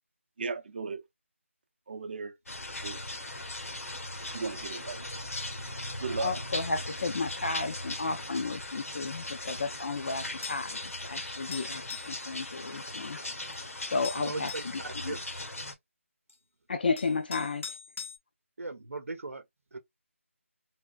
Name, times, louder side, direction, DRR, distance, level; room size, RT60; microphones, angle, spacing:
voice 1, 0.4-1.0 1.9-2.4 2.8-3.0 4.3-5.0 6.0-6.4, right 4 dB, 45° right, 0.6 m, -36 dB
sound 1, 2.5-15.7, left 2 dB, 90° left, 1.1 m, -39 dB
voice 2, 6.1-13.2 13.9-15.2 16.7-17.7, left 3 dB, 45° left, 0.4 m, -33 dB
sound 2, 10.4-10.7 11.5-12.2 13.5-13.6 14.0-14.8 16.3-16.4 17.0-18.2, left 6 dB, 70° left, 0.8 m, -41 dB
voice 3, 14.2-15.2 18.6-19.4 19.7-19.8, right 3 dB, 80° right, 0.8 m, -38 dB
3.4 x 3.0 x 2.3 m
figure-of-eight pair, 165°, 7 cm